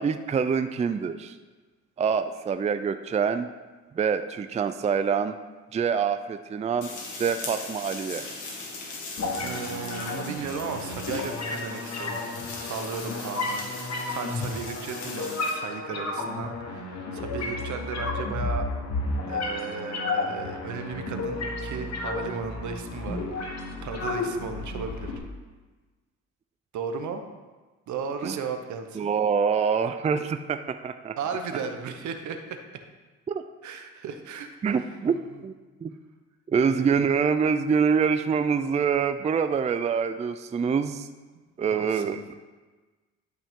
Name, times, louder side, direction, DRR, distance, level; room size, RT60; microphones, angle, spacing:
voice 1, 0.0-1.3 2.0-3.5 3.9-5.4 5.7-6.9 7.2-8.3 28.2-28.4 29.0-31.2 33.3-33.4 34.6-35.1 35.4-35.5 35.8-35.9 36.5-41.1 41.6-42.4, right 6 dB, 25° right, 9 dB, 0.4 m, -25 dB
sound 1, 6.8-15.5, left 3 dB, 80° left, 1.9 m, -39 dB
sound 2, 9.2-25.2, left 2 dB, 60° left, 1.4 m, -32 dB
voice 2, 9.4-12.2 12.6-18.7 19.3-25.1 26.7-27.2 27.9-29.2 31.2-32.6 33.6-35.0 35.3-35.4 36.6-37.0 41.7-42.2, right 5 dB, 70° right, 6 dB, 1.0 m, -35 dB
11.5 x 5.4 x 3.7 m, 1.3 s
cardioid pair, 90°, 30 cm